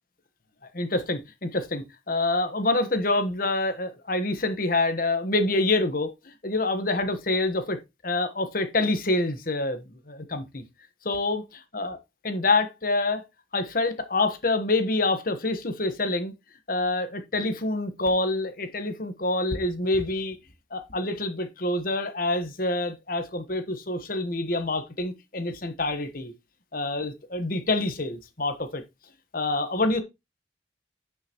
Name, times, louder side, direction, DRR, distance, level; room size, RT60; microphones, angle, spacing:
voice 1, 0.7-7.8 8.0-10.6 11.0-11.4 11.7-12.0 12.2-13.2 13.5-16.3 16.7-20.4 20.7-26.3 26.7-28.8 29.3-30.0, left 2 dB, 50° left, 1.2 m, -26 dB
9.7 x 5.7 x 3.0 m
head